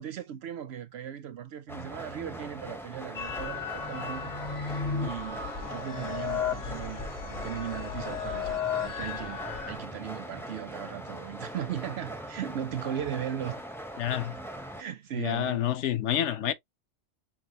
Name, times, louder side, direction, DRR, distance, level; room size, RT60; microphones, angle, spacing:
voice 1, 0.0-4.3 5.0-13.6 14.8-15.6, right 9 dB, 65° right, 0.7 m, -37 dB
sound 1, 1.7-14.8, right 1 dB, 5° left, 0.3 m, -41 dB
sound 2, 3.1-9.8, left 6 dB, 40° left, 0.9 m, -34 dB
voice 2, 14.0-14.4 15.1-16.5, left 11 dB, 70° left, 0.9 m, -28 dB
5.8 x 2.4 x 2.8 m
omnidirectional pair, 1.3 m